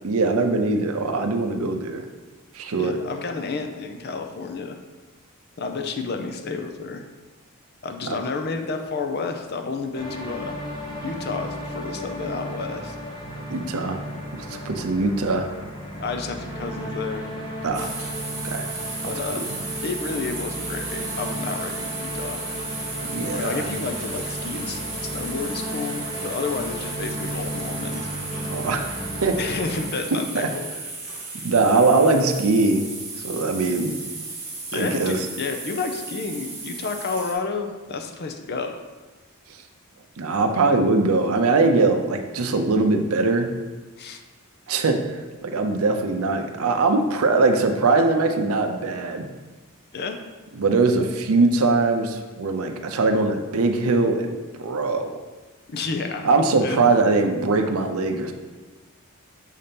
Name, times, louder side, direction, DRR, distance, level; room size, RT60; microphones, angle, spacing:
voice 1, 0.0-2.0 2.5-3.0 8.0-8.2 13.5-14.0 14.3-15.5 17.6-17.9 18.4-18.7 23.1-23.7 28.5-28.9 29.2-29.4 31.4-32.9 33.2-34.0 34.7-35.3 40.2-43.5 44.7-45.0 45.4-49.3 50.6-55.1 56.2-58.3, right 3 dB, 70° right, 5 dB, 0.6 m, -21 dB
voice 2, 2.8-4.8 5.6-7.0 7.8-10.5 11.0-13.0 16.0-17.3 19.0-19.5 19.8-22.4 23.3-28.1 29.4-30.7 34.7-38.8 44.0-44.2 49.9-50.2 55.7-56.3 56.6-56.9, left 4 dB, 45° left, 5 dB, 0.5 m, -30 dB
sound 1, 9.9-29.8, equal, 20° left, 0.8 m, -34 dB
sound 2, 17.7-37.3, right 3 dB, 15° right, 1.5 m, -35 dB
6.5 x 2.8 x 5.2 m, 1.3 s
head